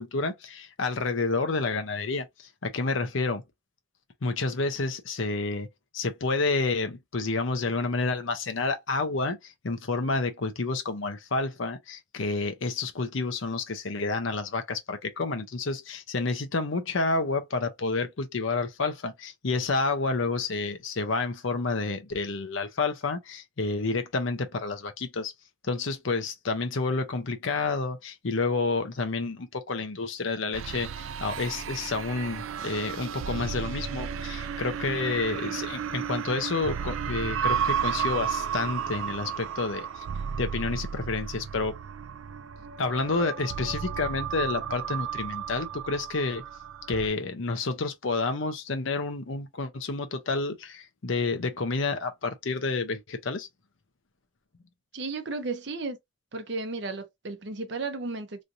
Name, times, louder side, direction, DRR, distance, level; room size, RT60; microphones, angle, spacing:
voice 1, 0.0-2.3 2.6-3.4 4.2-5.7 5.9-25.3 25.6-39.9 40.4-41.7 42.8-46.4 46.9-53.5, left 3 dB, 80° left, 0.7 m, -29 dB
sound 1, 30.5-47.1, right 8 dB, 85° right, 0.4 m, -33 dB
voice 2, 54.9-56.0 56.3-58.4, right 3 dB, 60° right, 0.7 m, -34 dB
3.1 x 2.6 x 2.6 m
head